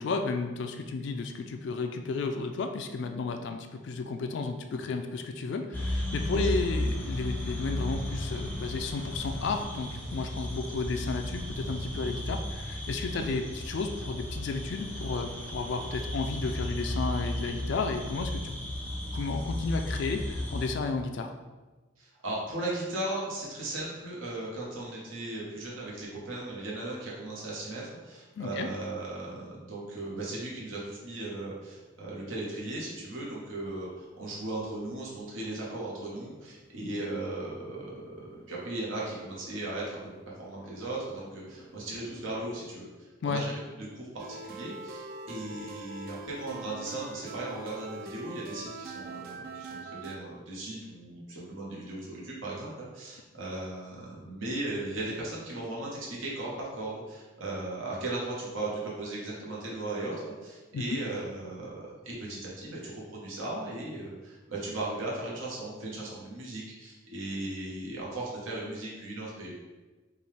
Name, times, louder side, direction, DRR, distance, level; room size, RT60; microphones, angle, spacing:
voice 1, 0.0-18.4 19.1-21.3 28.4-28.7 43.2-43.4 60.7-61.0, left 4 dB, 60° left, 5 dB, 0.3 m, -33 dB
sound 1, 5.7-20.7, left 1 dB, 10° left, 0.6 m, -34 dB
voice 2, 6.3-6.7 13.1-13.3 22.0-40.1 40.4-69.5, right 2 dB, 80° right, -5 dB, 1.2 m, -37 dB
Motorcycle, 30.6-42.7, equal, 20° right, 0.9 m, -57 dB
sound 2, 44.2-50.2, right 3 dB, 45° right, 0.3 m, -42 dB
5.2 x 2.4 x 3.3 m, 1.2 s
head